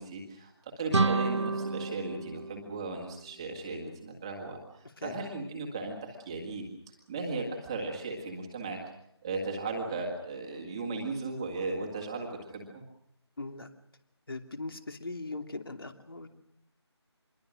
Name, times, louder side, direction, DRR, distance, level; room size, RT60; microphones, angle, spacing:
voice 1, 0.0-6.7 7.1-8.8 9.2-12.8, right 3 dB, 10° right, 1 dB, 1.9 m, -36 dB
sound 1, 0.9-3.7, right 3 dB, 75° right, 1.0 m, -31 dB
voice 2, 13.4-13.7 14.3-16.3, left 3 dB, 55° left, 7 dB, 2.7 m, -39 dB
26.0 x 22.0 x 6.4 m, 0.77 s
figure-of-eight pair, 175°, 15 cm